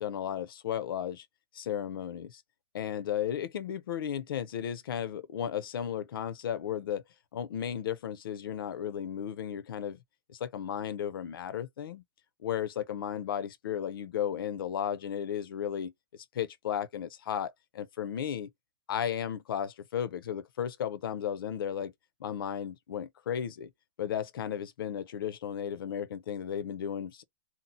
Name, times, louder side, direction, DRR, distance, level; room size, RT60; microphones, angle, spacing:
voice 1, 0.0-1.3 1.5-2.4 2.7-7.0 7.3-10.0 10.3-12.0 12.4-18.5 18.9-21.9 22.2-23.7 24.0-27.2, left 9 dB, 70° left, 0.6 m, -34 dB
2.7 x 2.0 x 3.9 m
supercardioid pair, 170°, 12 cm